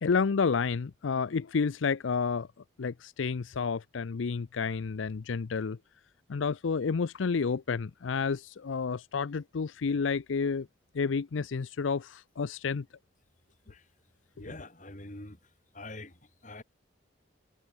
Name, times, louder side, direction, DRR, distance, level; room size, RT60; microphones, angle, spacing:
voice 1, 0.0-2.5 2.8-5.8 6.3-10.7 10.9-12.8, left 5 dB, 90° left, 0.5 m, -30 dB
voice 2, 14.4-15.4 15.7-16.6, left 2 dB, 40° left, 4.4 m, -45 dB
head